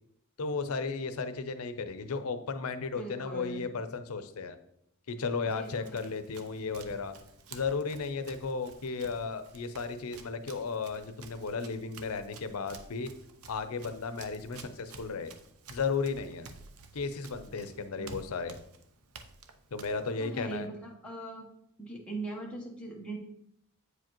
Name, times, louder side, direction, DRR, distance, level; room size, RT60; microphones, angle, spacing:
voice 1, 0.4-4.6 5.1-7.1 7.5-13.1 13.5-15.3 15.7-16.5 16.9-18.6 19.7-20.7, left 4 dB, 85° left, 10 dB, 0.6 m, -34 dB
voice 2, 3.0-3.7 5.5-6.0 18.0-18.2 20.0-21.5 21.8-23.2, right 2 dB, 5° left, -3 dB, 1.0 m, -41 dB
Run, 5.4-20.7, right 4 dB, 90° right, 0.6 m, -52 dB
8.1 x 4.9 x 3.0 m, 0.75 s
head